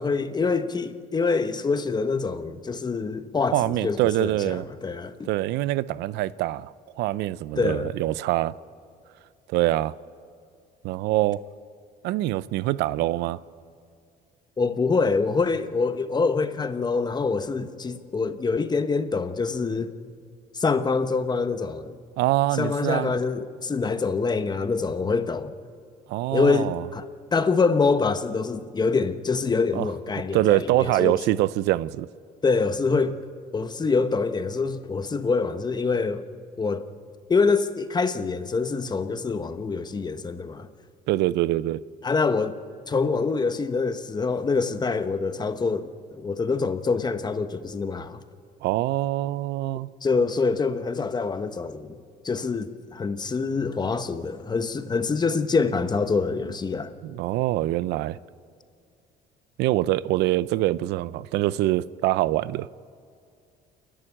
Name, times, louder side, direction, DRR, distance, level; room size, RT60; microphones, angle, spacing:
voice 1, 0.0-5.3 7.6-7.9 14.6-19.9 20.5-22.0 22.5-25.5 26.3-31.2 32.4-33.2 33.5-36.2 36.6-36.8 37.3-40.7 42.0-42.5 42.9-48.2 50.0-52.0 52.2-56.9, left 4 dB, 25° left, 1.1 m, -25 dB
voice 2, 3.5-4.7 5.3-8.6 9.5-9.9 10.8-11.4 12.0-13.4 22.2-23.1 26.1-26.9 29.7-29.9 30.3-32.1 41.1-41.8 48.6-49.9 57.0-58.2 59.6-62.7, right 16 dB, 85° right, 0.5 m, -24 dB
28.5 x 11.5 x 9.0 m
cardioid pair, 110°, 17 cm